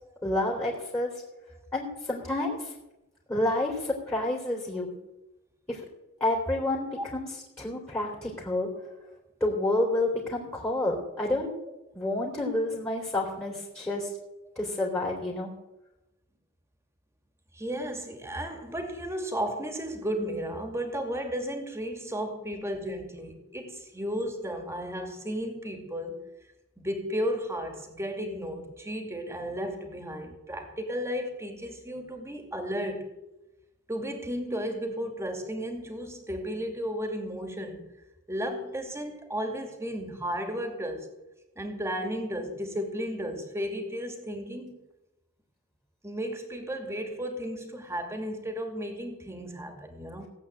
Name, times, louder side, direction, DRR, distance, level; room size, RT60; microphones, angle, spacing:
voice 1, 0.2-1.1 1.7-2.7 3.3-4.9 5.7-5.8 6.2-7.3 7.6-8.7 9.4-11.5 11.9-14.1 14.5-15.5, left 1 dB, 15° left, 3.3 m, -29 dB
voice 2, 17.5-26.2 26.8-33.1 33.9-37.9 38.3-41.1 41.6-44.8 46.0-50.3, equal, 10° right, 2.4 m, -34 dB
17.0 x 8.2 x 8.8 m
head